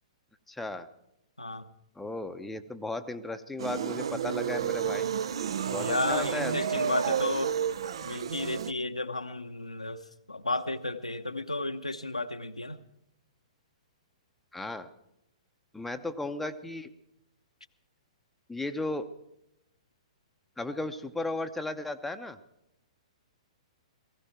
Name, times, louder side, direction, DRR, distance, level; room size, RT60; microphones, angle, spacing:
voice 1, 0.5-0.9 2.0-5.1 5.7-7.2 14.5-14.9 15.7-16.9 18.5-19.1 20.6-22.4, left 2 dB, 5° left, 7 dB, 0.7 m, -35 dB
sound 1, 3.6-8.7, right 8 dB, 55° right, 0.6 m, -31 dB
voice 2, 5.8-7.5 8.0-12.8, left 2 dB, 80° left, 7 dB, 0.9 m, -33 dB
17.5 x 16.0 x 4.5 m, 0.81 s
figure-of-eight pair, 115°, 3 cm